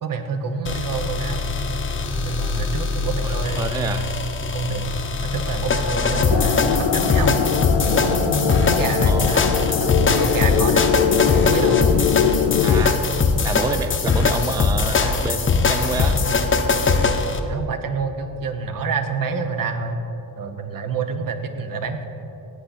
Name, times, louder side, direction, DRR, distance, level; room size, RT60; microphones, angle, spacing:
voice 1, 0.0-1.5 2.1-4.0 4.4-4.8 5.3-7.4 7.8-10.9 11.4-11.8 17.5-20.0 20.4-22.0, right 5 dB, 55° right, 7 dB, 1.1 m, -27 dB
sound 1, 0.6-17.4, left 4 dB, 30° left, 0.8 m, -21 dB
voice 2, 3.2-4.1 9.1-9.4 12.6-13.0 13.4-16.2, right 3 dB, 10° right, 8 dB, 0.3 m, -28 dB
sound 2, 6.3-12.8, left 8 dB, 85° left, 0.6 m, -22 dB
16.0 x 8.1 x 4.1 m, 2.9 s
cardioid pair, 110°, 41 cm